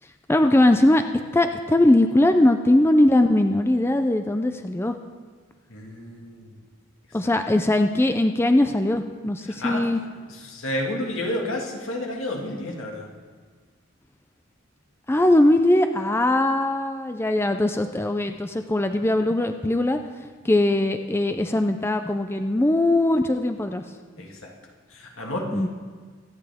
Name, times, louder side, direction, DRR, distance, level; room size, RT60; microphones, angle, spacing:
voice 1, 0.3-1.0 1.3-5.0 7.1-10.0 15.1-20.0 20.4-23.8 25.5-25.7, left 1 dB, 10° left, 7 dB, 0.4 m, -20 dB
voice 2, 5.7-6.5 9.6-9.8 10.5-13.1 24.2-24.5 24.9-25.5, left 1 dB, 80° left, 0 dB, 2.1 m, -30 dB
24.0 x 9.0 x 3.6 m, 1.5 s
head